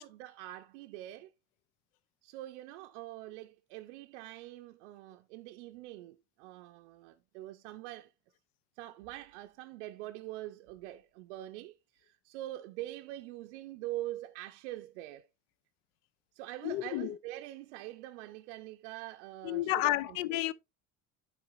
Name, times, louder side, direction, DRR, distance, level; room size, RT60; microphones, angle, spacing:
voice 1, 0.0-1.3 2.2-8.1 8.8-15.3 16.3-20.4, right 15 dB, 85° right, 0.5 m, -44 dB
voice 2, 16.6-17.2 19.4-20.5, left 16 dB, 75° left, 0.5 m, -31 dB
11.5 x 4.4 x 2.4 m
hypercardioid pair, 75°, 35 cm